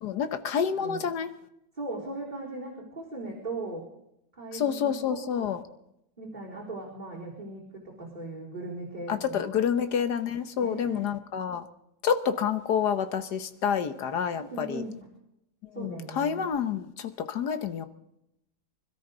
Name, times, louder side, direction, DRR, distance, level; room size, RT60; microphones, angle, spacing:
voice 1, 0.0-1.3 4.5-5.6 9.1-11.7 12.0-14.8 15.8-17.8, left 7 dB, 80° left, 10 dB, 1.6 m, -28 dB
voice 2, 1.8-3.9 4.4-5.5 6.2-9.5 10.6-11.1 14.4-15.0 15.7-16.5, right 2 dB, 25° right, -5 dB, 4.2 m, -38 dB
25.0 x 13.0 x 3.9 m, 0.82 s
omnidirectional pair, 1.7 m